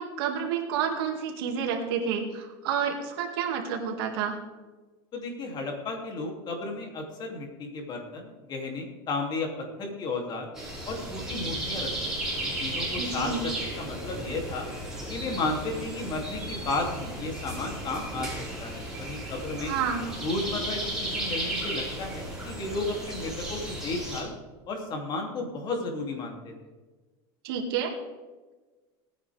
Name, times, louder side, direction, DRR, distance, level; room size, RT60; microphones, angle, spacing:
voice 1, 0.0-4.4 13.0-13.4 19.6-20.1 27.4-28.0, right 7 dB, 80° right, 3 dB, 2.4 m, -29 dB
voice 2, 5.1-9.5 9.8-10.5 10.9-11.9 12.2-14.7 15.1-18.3 18.6-19.7 20.2-24.3 24.7-26.5, left 3 dB, 35° left, 1 dB, 3.0 m, -33 dB
sound 1, 10.5-24.2, right 1 dB, 5° right, 5.1 m, -34 dB
19.0 x 9.7 x 3.6 m, 1.3 s
supercardioid pair, 145°, 12 cm